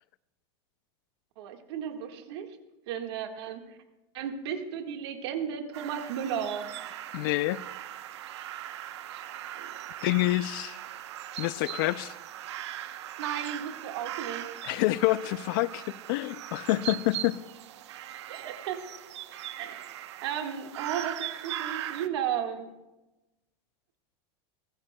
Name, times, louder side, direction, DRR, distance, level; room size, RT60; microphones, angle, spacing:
voice 1, 1.4-2.5 2.9-3.8 4.1-6.7 9.1-9.7 13.2-14.5 18.3-18.8 19.6-22.7, right 9 dB, 65° right, 1.6 m, -34 dB
sound 1, 5.7-22.1, right 12 dB, 85° right, 0.8 m, -40 dB
voice 2, 7.1-7.6 10.0-10.8 11.4-12.1 14.6-17.4, left 18 dB, 50° left, 0.4 m, -27 dB
20.5 x 15.0 x 2.2 m
supercardioid pair, 160°, 14 cm